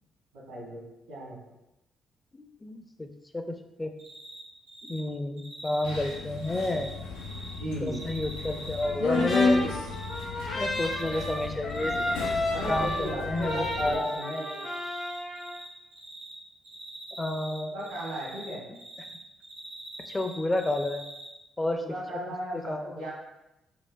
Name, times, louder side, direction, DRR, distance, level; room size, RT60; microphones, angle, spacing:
voice 1, 0.3-0.8 1.1-1.5 7.6-8.1 12.5-14.6 17.6-18.6 21.6-23.1, equal, 85° right, -6 dB, 1.5 m, -36 dB
voice 2, 2.3-3.9 4.8-6.9 7.8-9.8 10.5-11.9 12.7-14.1 17.2-17.9 20.1-21.0 21.6-21.8 22.7-22.9, left 1 dB, 25° left, 6 dB, 0.4 m, -30 dB
Cricket, 4.0-4.4 4.7-5.0 5.4-7.6 7.9-9.5 9.9-10.2 10.6-11.4 11.7-13.1 13.4-15.7 15.9-16.3 16.6-19.2 19.4-21.3, right 1 dB, 70° right, 0.8 m, -44 dB
Subway metro underground, 5.8-13.9, left 3 dB, 85° left, 0.4 m, -32 dB
Trumpet, 8.8-15.5, left 1 dB, 65° left, 0.9 m, -33 dB
4.7 x 2.2 x 2.4 m, 0.91 s
hypercardioid pair, 45°, 0 cm